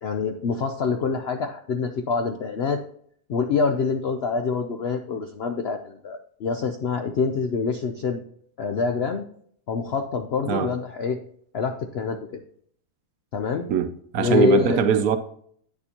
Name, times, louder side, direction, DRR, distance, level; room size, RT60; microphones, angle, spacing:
voice 1, 0.0-2.8 3.3-8.2 8.6-9.2 9.7-11.2 11.5-12.2 13.3-13.7 14.2-14.8, left 5 dB, 70° left, 0.6 m, -26 dB
voice 2, 14.1-15.2, right 6 dB, 70° right, 1.0 m, -21 dB
9.4 x 6.8 x 2.9 m
omnidirectional pair, 1.7 m